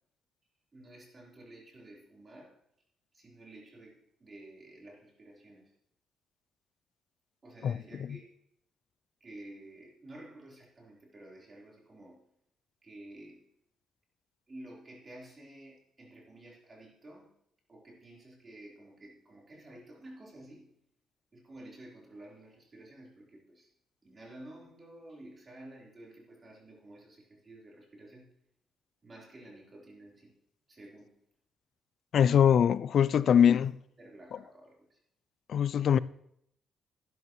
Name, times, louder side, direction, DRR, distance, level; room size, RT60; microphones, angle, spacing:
voice 1, 0.7-2.5 3.1-5.7 7.4-8.3 9.2-12.2 12.8-13.4 14.5-17.3 17.7-20.7 21.3-23.7 24.0-28.3 29.0-30.4 30.7-31.2 33.2-33.7 34.0-35.0, right 1 dB, 30° right, 4.0 m, -51 dB
voice 2, 32.1-33.7 35.5-36.0, left 8 dB, 60° left, 0.4 m, -22 dB
12.0 x 10.5 x 3.1 m
cardioid pair, 90°, 0 cm